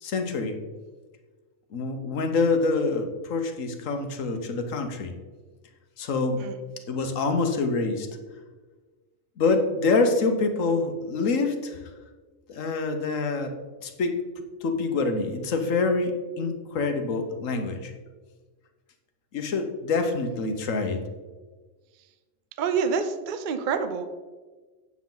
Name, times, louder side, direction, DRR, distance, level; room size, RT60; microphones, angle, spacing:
voice 1, 0.0-0.6 1.7-5.1 6.0-6.5 6.9-8.1 9.4-11.8 12.5-13.5 13.8-14.2 14.6-17.9 19.3-21.0, left 3 dB, 75° left, 6 dB, 1.4 m, -26 dB
voice 2, 22.6-24.1, right 6 dB, 50° right, 9 dB, 0.7 m, -27 dB
9.6 x 7.2 x 3.9 m, 1.3 s
omnidirectional pair, 1.4 m